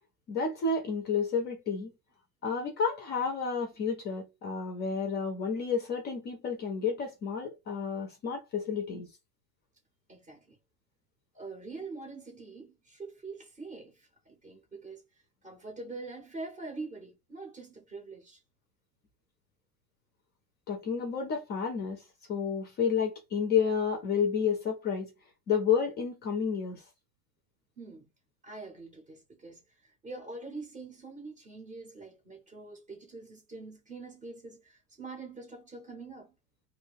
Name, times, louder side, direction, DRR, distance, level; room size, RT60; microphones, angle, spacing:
voice 1, 0.3-1.9 2.4-9.1 20.7-25.1 25.5-26.8, left 6 dB, 25° left, 0.4 m, -30 dB
voice 2, 10.1-10.6 11.3-15.0 15.4-18.4 27.8-28.1 28.4-36.3, right 3 dB, 15° right, 0.6 m, -44 dB
2.6 x 2.2 x 3.3 m
supercardioid pair, 135°, 46 cm